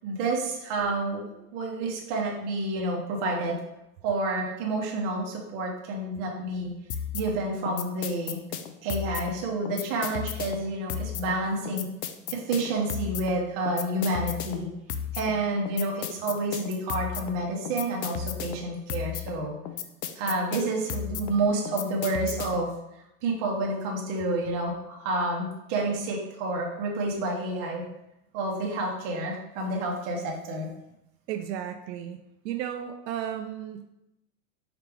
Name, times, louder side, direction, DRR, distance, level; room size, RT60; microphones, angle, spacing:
voice 1, 0.0-3.6 4.0-6.7 7.1-8.4 8.8-11.9 12.3-14.7 15.1-19.5 20.2-22.7 23.2-27.8 28.3-30.7, right 2 dB, 30° right, -1 dB, 0.8 m, -29 dB
sound 1, 6.9-22.8, left 9 dB, 75° left, 0.6 m, -35 dB
voice 2, 31.3-33.9, right 10 dB, 85° right, 6 dB, 0.6 m, -34 dB
4.9 x 3.2 x 3.4 m, 0.87 s
supercardioid pair, 160°, 49 cm